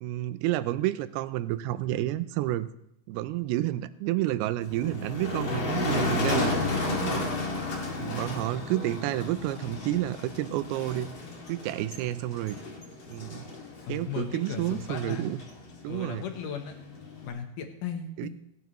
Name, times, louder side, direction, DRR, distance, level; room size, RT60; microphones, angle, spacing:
voice 1, 0.0-2.7 3.1-6.5 6.9-7.3 8.0-11.1 11.5-12.6 13.1-13.5 13.9-15.4 15.8-16.3 18.2-18.3, right 15 dB, 80° right, 14 dB, 2.5 m, -30 dB
Motor vehicle (road), 4.6-17.3, left 2 dB, 35° left, 2.6 m, -33 dB
voice 2, 13.9-15.3 15.9-16.8 17.2-18.3, left 7 dB, 70° left, 5 dB, 2.2 m, -36 dB
26.0 x 9.5 x 3.1 m, 0.74 s
omnidirectional pair, 4.7 m